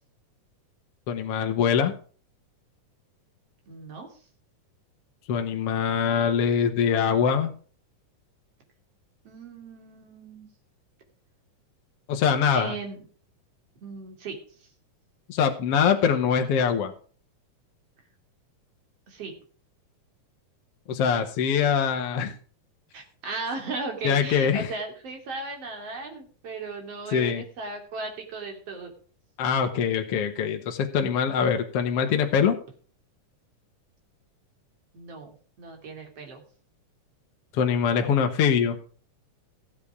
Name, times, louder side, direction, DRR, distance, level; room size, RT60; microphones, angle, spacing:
voice 1, 1.1-1.9 5.3-7.5 12.1-12.7 15.3-16.9 20.9-22.3 24.0-24.7 27.1-27.4 29.4-32.6 37.5-38.8, left 7 dB, 60° left, 5 dB, 1.8 m, -23 dB
voice 2, 3.7-4.2 9.3-10.5 12.5-13.0 13.8-14.7 19.1-19.3 22.9-28.9 34.9-36.4, right 3 dB, 50° right, 3 dB, 3.6 m, -37 dB
15.0 x 8.7 x 4.7 m, 0.42 s
omnidirectional pair, 3.6 m